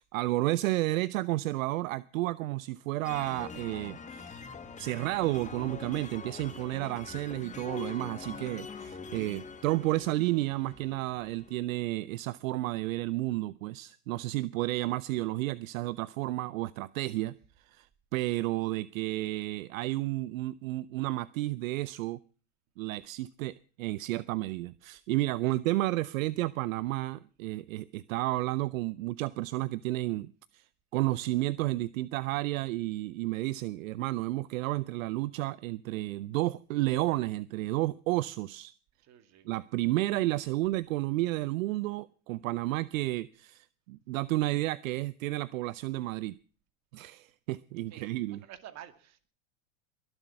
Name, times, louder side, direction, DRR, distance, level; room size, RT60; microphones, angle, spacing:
voice 1, 0.0-4.5 4.8-17.4 17.7-17.9 18.1-22.2 22.8-30.6 30.9-38.7 39.5-46.4 46.9-48.4, right 18 dB, 70° right, 19 dB, 0.6 m, -31 dB
sound 1, 3.0-11.6, left 5 dB, 15° left, 1.4 m, -44 dB
voice 2, 39.0-39.5 47.9-49.3, right 11 dB, 40° right, 10 dB, 2.2 m, -50 dB
21.5 x 8.0 x 5.7 m, 0.40 s
hypercardioid pair, 105°, 42 cm